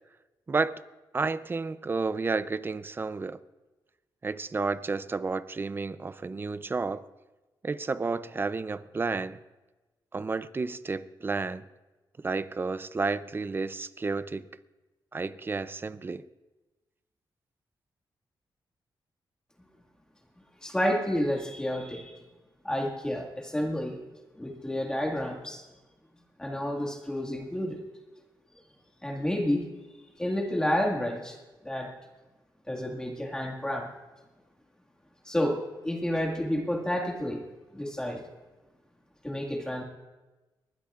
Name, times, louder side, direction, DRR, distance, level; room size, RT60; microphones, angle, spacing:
voice 1, 1.1-3.4 4.2-7.0 7.6-9.4 10.1-11.6 12.2-14.4 15.1-16.2, right 4 dB, 25° right, 15 dB, 0.5 m, -31 dB
voice 2, 20.6-22.1 22.6-24.0 24.4-25.6 26.4-27.8 29.0-29.7 30.2-31.4 31.6-31.9 32.7-33.9 35.2-37.4 37.7-38.2 39.2-39.8, equal, 10° left, 0 dB, 1.9 m, -30 dB
22.5 x 20.0 x 2.5 m, 1.1 s
wide cardioid pair, 130°, 8 cm